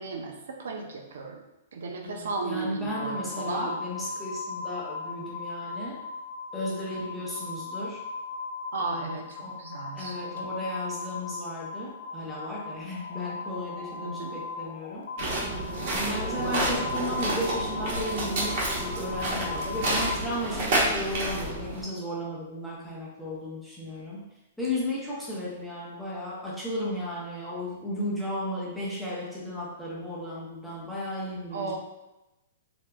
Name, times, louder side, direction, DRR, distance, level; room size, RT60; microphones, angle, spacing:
voice 1, 0.0-1.4 1.7-3.8 8.7-10.4 14.0-14.4 31.5-31.8, right 3 dB, 75° right, 2 dB, 0.5 m, -35 dB
voice 2, 2.0-6.0 6.5-8.0 8.8-9.6 9.9-15.1 15.9-24.2 24.6-31.8, left 1 dB, ahead, -7 dB, 0.6 m, -34 dB
sound 1, 2.9-20.2, left 4 dB, 90° left, 0.4 m, -37 dB
sound 2, 15.2-21.8, right 1 dB, 40° right, 0.8 m, -29 dB
3.4 x 2.9 x 2.2 m, 0.98 s
hypercardioid pair, 175°, 0 cm